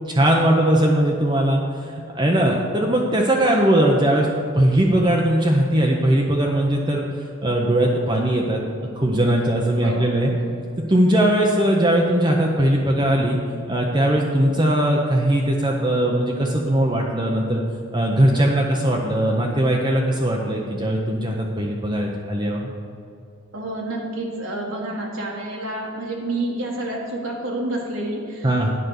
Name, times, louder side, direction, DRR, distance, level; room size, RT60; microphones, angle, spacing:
voice 1, 0.1-1.6 2.1-4.3 4.5-7.0 7.4-8.6 9.0-10.3 10.9-13.4 13.7-17.6 17.9-22.7 28.4-28.7, right 1 dB, 20° right, -1 dB, 0.7 m, -19 dB
voice 2, 3.4-3.8 9.8-10.4 18.2-18.5 23.5-28.7, right 1 dB, 75° right, -2 dB, 1.6 m, -29 dB
10.0 x 5.2 x 8.0 m, 2.4 s
head